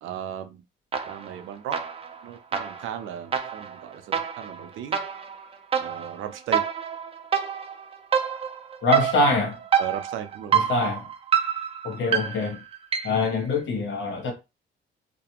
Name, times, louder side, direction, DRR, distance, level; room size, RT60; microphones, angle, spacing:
voice 1, 0.0-0.6 1.1-1.8 2.2-5.0 5.8-6.6 9.8-10.6, right 9 dB, 85° right, 0.5 m, -36 dB
sound 1, 0.9-1.4 1.7-13.3, right 8 dB, 30° right, 0.5 m, -27 dB
voice 2, 8.8-9.5 10.5-11.1 11.8-12.6 13.0-14.3, left 3 dB, 70° left, 1.1 m, -24 dB
2.4 x 2.1 x 2.9 m
cardioid pair, 90°, 20 cm